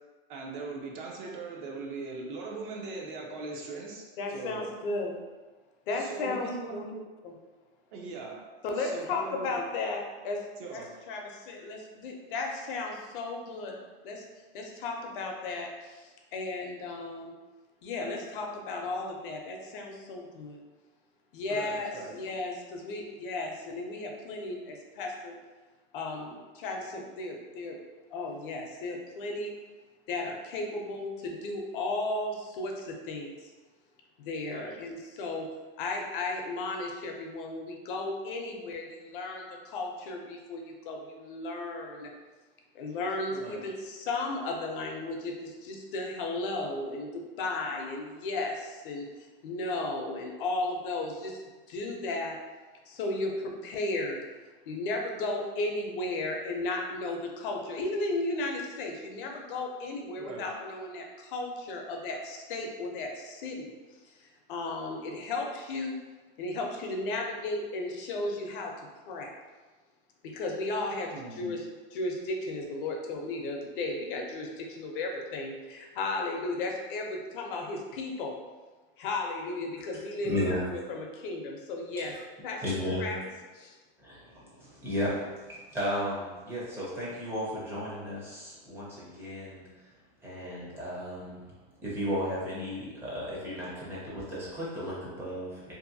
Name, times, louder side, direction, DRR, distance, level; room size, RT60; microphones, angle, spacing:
voice 1, 0.3-4.7 5.9-7.0 7.9-8.4 8.8-9.7 10.6-10.9 21.5-22.2 34.5-34.8 43.3-43.7 60.2-60.4 71.1-71.5, right 3 dB, 55° right, -1 dB, 0.6 m, -40 dB
voice 2, 4.2-5.1 5.9-6.8 8.6-10.4 10.7-13.7 14.0-14.2 14.5-15.7 16.3-17.3 17.8-20.6 21.3-25.3 25.9-27.8 28.1-29.5 30.1-33.3 34.2-35.5 35.8-42.1 42.8-49.1 49.4-51.4 51.7-52.4 52.9-54.2 54.7-63.7 64.5-66.0 66.4-68.7 69.1-69.3 70.2-71.6 71.9-78.3 79.0-80.3 80.7-82.1 82.4-82.6 83.0-83.2 83.5-83.7, left 2 dB, 60° left, 1 dB, 0.5 m, -34 dB
voice 3, 80.2-80.9 82.6-83.1 84.0-89.9 90.2-91.5 91.8-95.7, equal, 10° right, -7 dB, 0.5 m, -34 dB
2.7 x 2.5 x 2.6 m, 1.3 s
supercardioid pair, 165°, 30 cm